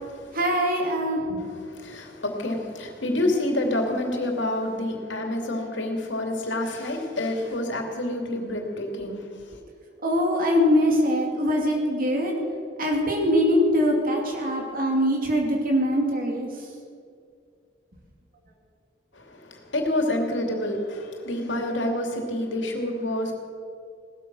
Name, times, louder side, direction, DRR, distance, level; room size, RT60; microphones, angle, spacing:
voice 1, 0.3-1.4 10.0-12.4 12.8-16.7, equal, 50° right, 0 dB, 2.6 m, -23 dB
voice 2, 1.7-9.2 19.2-23.3, left 1 dB, 75° left, 2 dB, 2.8 m, -28 dB
17.5 x 13.0 x 6.3 m, 2.2 s
head